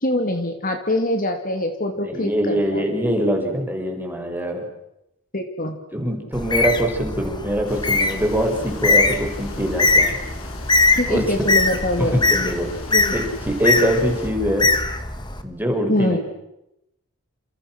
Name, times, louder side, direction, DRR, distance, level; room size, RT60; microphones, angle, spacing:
voice 1, 0.0-2.9 5.3-5.8 11.0-12.2 12.9-13.1 15.9-16.2, left 1 dB, 40° left, 5 dB, 3.0 m, -24 dB
voice 2, 2.0-4.6 5.9-10.2 11.1-11.5 12.0-12.7 13.1-14.7 15.4-16.2, equal, 10° right, 2 dB, 5.9 m, -23 dB
Bird, 6.3-15.4, left 3 dB, 20° left, 2.2 m, -22 dB
sound 1, 7.7-14.3, left 2 dB, 75° left, 5.9 m, -40 dB
29.5 x 29.5 x 6.3 m, 0.86 s
head